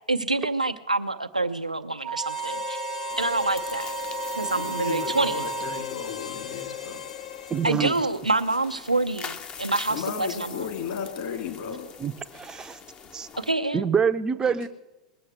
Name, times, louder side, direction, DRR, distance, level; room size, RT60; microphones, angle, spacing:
voice 1, 0.0-2.8 3.2-3.9 4.4-5.5 7.6-9.2 9.6-10.6 13.4-13.8, right 2 dB, 90° right, 7 dB, 0.8 m, -26 dB
Wind instrument woodwind instrument, 2.0-5.9, right 9 dB, 50° right, 0.9 m, -34 dB
Harmonica, 2.2-8.2, left 9 dB, 65° left, 1.4 m, -37 dB
sound 1, 3.1-13.5, left 6 dB, 25° left, 0.9 m, -44 dB
voice 2, 4.5-7.0 7.9-8.0 9.9-11.9 14.4-14.7, left 6 dB, 50° left, 4 dB, 2.8 m, -35 dB
voice 3, 7.5-7.9 12.0-12.8 13.1-13.3 13.7-14.7, right 7 dB, 20° right, 10 dB, 0.7 m, -26 dB
20.0 x 7.2 x 7.9 m, 1.0 s
figure-of-eight pair, 90°, 4 cm